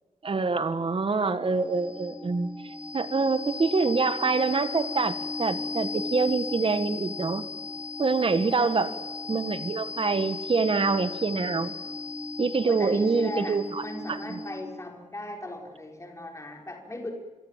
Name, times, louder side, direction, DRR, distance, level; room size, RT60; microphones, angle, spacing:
voice 1, 0.2-7.4 8.0-8.9 9.3-11.7 12.4-13.8 14.1-14.4, right 4 dB, 45° right, 11 dB, 1.7 m, -26 dB
sound 1, 1.0-14.9, left 3 dB, 10° right, 2.6 m, -36 dB
voice 2, 8.5-9.0 12.6-17.1, left 1 dB, 20° left, 2 dB, 5.1 m, -37 dB
27.5 x 23.5 x 7.5 m, 1.3 s
wide cardioid pair, 140°, 13 cm